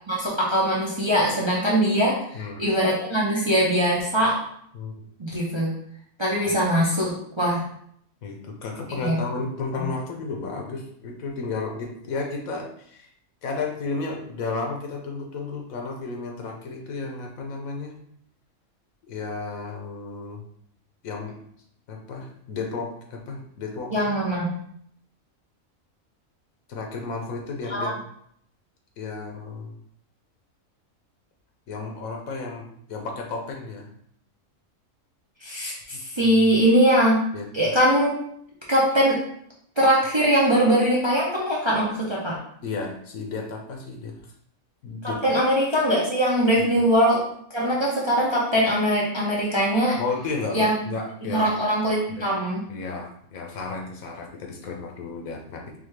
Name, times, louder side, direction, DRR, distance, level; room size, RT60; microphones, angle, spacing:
voice 1, 0.1-2.2 2.6-4.4 5.2-5.7 6.2-7.6 9.0-9.2 9.8-9.9 23.9-24.6 27.7-27.9 35.4-37.2 37.5-38.1 38.7-39.2 39.8-42.4 45.0-47.2 47.5-50.0 50.5-50.7 51.3-52.6, equal, 25° right, -5 dB, 0.7 m, -21 dB
voice 2, 2.3-2.6 4.7-4.9 6.5-6.6 8.2-13.1 13.4-18.0 19.0-20.4 21.0-21.5 21.9-24.1 26.7-27.9 29.0-29.8 31.7-33.9 35.9-36.3 37.3-37.7 42.6-44.3 44.8-45.2 46.6-46.9 50.0-51.7 52.1-52.3 52.7-55.8, left 4 dB, 85° left, 2 dB, 1.3 m, -33 dB
4.0 x 3.4 x 3.3 m, 0.67 s
omnidirectional pair, 1.4 m